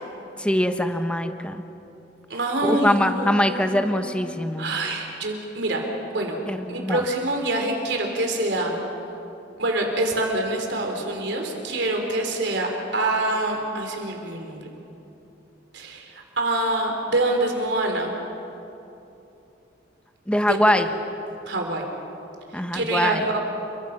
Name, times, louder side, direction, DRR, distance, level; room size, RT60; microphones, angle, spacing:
voice 1, 0.4-1.6 2.6-4.7 6.5-7.0 20.3-20.9 22.5-23.3, left 1 dB, 5° left, 7 dB, 1.1 m, -23 dB
voice 2, 2.3-5.8 6.1-6.4 6.7-8.8 9.6-14.7 15.7-18.1 20.4-20.6 21.5-21.8 22.7-23.4, right 2 dB, 70° right, 2 dB, 4.0 m, -26 dB
30.0 x 24.0 x 6.0 m, 2.9 s
head